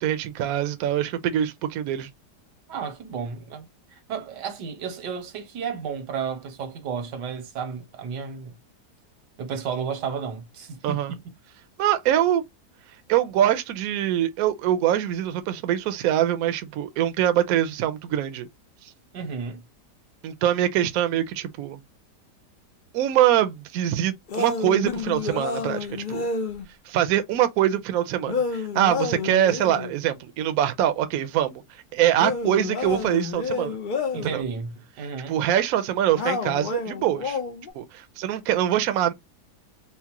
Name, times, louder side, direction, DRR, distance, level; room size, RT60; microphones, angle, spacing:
voice 1, 0.0-2.1 10.8-11.1 11.8-12.5 13.1-18.5 20.2-21.8 22.9-26.3 26.9-31.6 31.9-33.8 34.3-34.4 35.3-37.4 37.7-39.1, right 11 dB, 70° right, 0.9 m, -23 dB
voice 2, 2.7-8.5 9.4-11.3 19.1-19.6 34.1-35.3, right 6 dB, 85° right, 1.5 m, -33 dB
sound 1, 24.3-26.7 28.3-29.9 32.1-34.4 36.1-37.7, left 4 dB, 75° left, 0.4 m, -29 dB
4.5 x 2.1 x 2.9 m
omnidirectional pair, 1.8 m